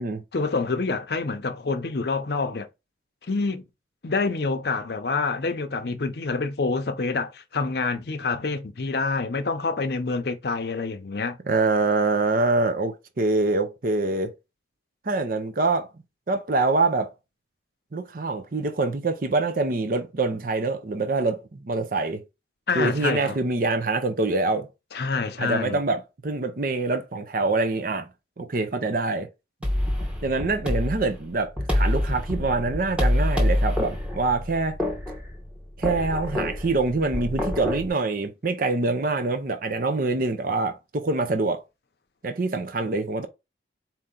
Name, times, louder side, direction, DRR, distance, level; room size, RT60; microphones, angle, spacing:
voice 1, 0.3-2.7 3.3-3.6 4.0-11.4 22.7-23.4 24.9-25.8, left 4 dB, 60° left, 0.6 m, -27 dB
voice 2, 11.5-14.3 15.1-15.9 16.3-17.1 17.9-22.2 22.7-24.7 25.4-28.1 28.4-29.3 30.2-34.8 35.8-41.6 42.2-43.3, right 3 dB, 50° right, 0.6 m, -25 dB
sound 1, 29.6-37.9, left 1 dB, 5° right, 1.1 m, -26 dB
4.3 x 2.7 x 3.8 m
head